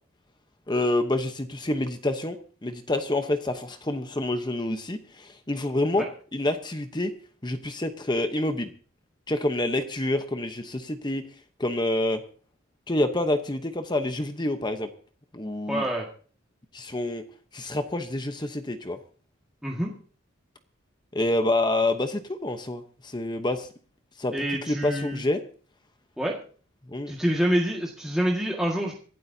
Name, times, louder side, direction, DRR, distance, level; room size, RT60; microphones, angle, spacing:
voice 1, 0.7-6.0 6.3-7.1 7.4-8.7 9.3-11.2 11.6-12.2 12.9-14.9 15.3-15.8 16.7-17.2 17.5-19.0 21.1-23.7 24.2-25.4 26.9-27.1, left 1 dB, 20° left, 8 dB, 0.9 m, -27 dB
voice 2, 15.7-16.1 19.6-20.0 24.3-25.2 26.2-26.4 27.1-28.9, equal, 5° right, -3 dB, 1.8 m, -26 dB
26.0 x 12.5 x 2.8 m, 0.42 s
head